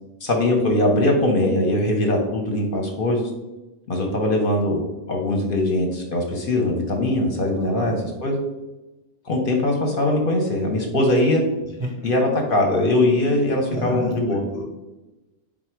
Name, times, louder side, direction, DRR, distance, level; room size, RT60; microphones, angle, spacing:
voice 1, 0.2-3.3 3.9-4.8 5.1-8.4 9.2-11.4 12.0-14.4, left 1 dB, 55° left, 1 dB, 0.7 m, -21 dB
voice 2, 7.6-7.9 11.8-12.1 13.7-14.7, right 1 dB, 35° right, -3 dB, 0.5 m, -30 dB
4.0 x 2.1 x 4.4 m, 1.1 s
omnidirectional pair, 1.2 m